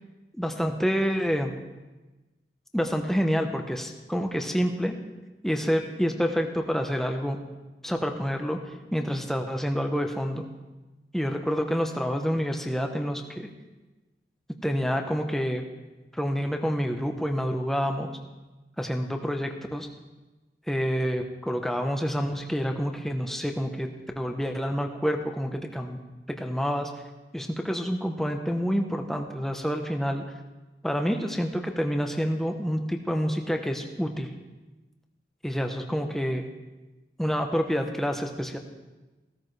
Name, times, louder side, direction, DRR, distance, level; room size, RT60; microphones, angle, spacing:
voice 1, 0.4-1.5 2.7-4.9 5.4-7.4 7.8-8.6 8.9-10.4 11.1-13.5 14.6-15.7 16.1-18.1 18.8-19.9 20.7-23.9 24.2-26.0 26.3-26.9 27.3-30.2 30.8-34.3 35.4-36.4 37.2-38.6, equal, ahead, 4 dB, 0.9 m, -28 dB
16.0 x 13.5 x 3.3 m, 1.2 s
head